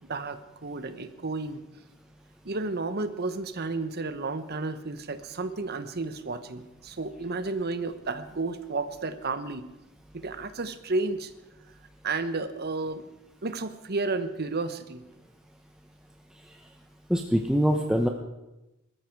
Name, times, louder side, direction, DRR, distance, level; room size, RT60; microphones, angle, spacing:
voice 1, 0.1-1.6 2.4-9.7 10.1-11.3 12.0-13.0 13.4-15.0, right 3 dB, 50° right, 11 dB, 1.0 m, -32 dB
voice 2, 17.1-18.1, equal, 5° right, 2 dB, 0.8 m, -23 dB
20.5 x 13.5 x 4.7 m, 0.97 s
head